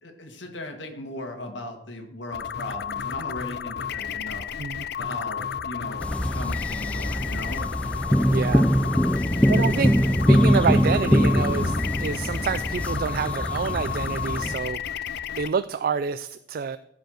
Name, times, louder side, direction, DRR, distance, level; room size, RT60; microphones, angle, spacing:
voice 1, 0.0-4.4 5.0-7.7, left 1 dB, 90° left, 4 dB, 1.8 m, -37 dB
sound 1, 2.3-15.5, left 8 dB, 60° left, 0.5 m, -32 dB
sound 2, 6.0-14.6, equal, 5° left, 0.6 m, -23 dB
voice 2, 8.3-8.7 9.5-10.0 10.3-16.8, right 5 dB, 55° right, 13 dB, 0.4 m, -28 dB
15.0 x 5.1 x 6.3 m, 0.79 s
head